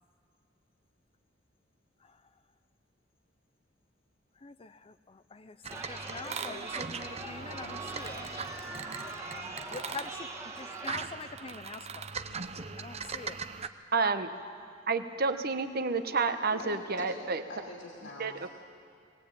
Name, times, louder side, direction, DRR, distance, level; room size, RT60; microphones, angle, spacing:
voice 1, 4.4-5.6 5.8-8.3 9.3-12.1 12.8-13.4, left 4 dB, 30° left, 12 dB, 0.5 m, -45 dB
sound 1, 5.6-13.7, right 5 dB, 35° right, 0.7 m, -40 dB
Chatter, 5.7-11.0, right 2 dB, 15° right, 1.8 m, -42 dB
voice 2, 13.9-14.3 14.9-17.4 18.2-18.3, right 4 dB, 50° right, 9 dB, 1.1 m, -29 dB
voice 3, 15.7-18.5, left 2 dB, 70° left, -2 dB, 2.9 m, -46 dB
20.0 x 19.0 x 8.8 m, 2.2 s
head